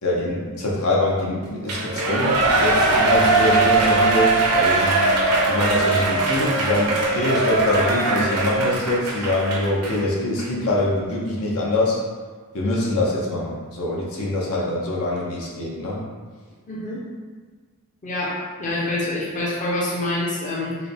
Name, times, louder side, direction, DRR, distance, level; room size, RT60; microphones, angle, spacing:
voice 1, 0.0-5.1 5.5-12.0 12.5-16.0, left 1 dB, 70° left, -3 dB, 0.8 m, -24 dB
Shout / Cheering, 1.7-10.0 10.4-10.5, right 2 dB, 75° right, 0.7 m, -20 dB
voice 2, 16.7-17.0 18.0-20.8, left 1 dB, 35° left, -6 dB, 0.7 m, -26 dB
4.7 x 2.2 x 3.4 m, 1.5 s
head